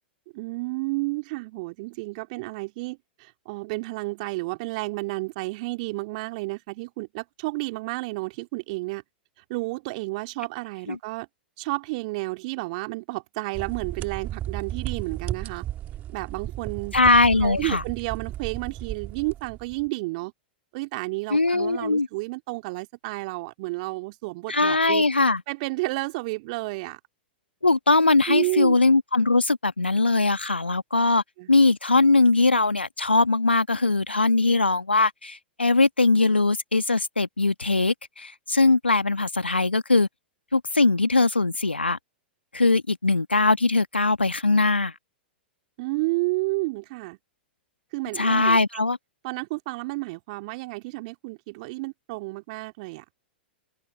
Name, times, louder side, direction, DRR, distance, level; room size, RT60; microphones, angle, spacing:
voice 1, 0.3-9.0 9.5-11.3 11.6-15.6 16.1-16.9 17.4-20.3 20.7-25.1 25.5-27.0 28.3-28.8 31.4-31.5 45.8-47.2 47.9-48.8 49.2-53.0, right 24 dB, 45° right, 2.8 m, -31 dB
sound 1, 13.5-19.9, right 12 dB, 30° right, 2.3 m, -34 dB
voice 2, 16.9-17.8 21.3-22.1 24.5-25.4 27.6-31.2 31.5-40.1 40.5-42.0 42.5-44.9 48.2-49.0, left 3 dB, 85° left, 1.8 m, -21 dB
figure-of-eight pair, 100°, 6 cm